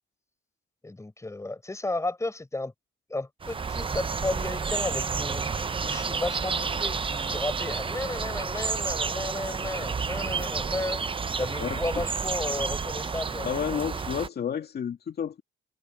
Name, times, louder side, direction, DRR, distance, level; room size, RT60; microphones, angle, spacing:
voice 1, 0.8-2.7 3.1-5.4 5.8-11.0 11.4-13.5, left 2 dB, 15° left, 5.3 m, -33 dB
sound 1, 3.4-14.3, right 5 dB, 25° right, 0.7 m, -30 dB
voice 2, 11.6-12.0 13.4-15.4, left 8 dB, 55° left, 2.2 m, -31 dB
cardioid pair, 90°, 20 cm